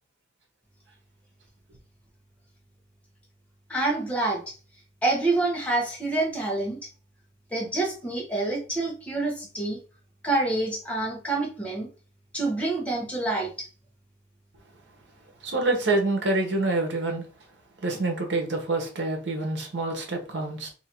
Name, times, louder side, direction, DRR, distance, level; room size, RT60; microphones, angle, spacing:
voice 1, 3.7-4.5 5.0-6.8 7.5-9.8 10.2-11.9 12.3-13.7, right 2 dB, 5° left, 1.1 m, -27 dB
voice 2, 15.4-17.2 17.8-20.7, right 2 dB, 70° right, 1.1 m, -26 dB
2.9 x 2.8 x 4.4 m
head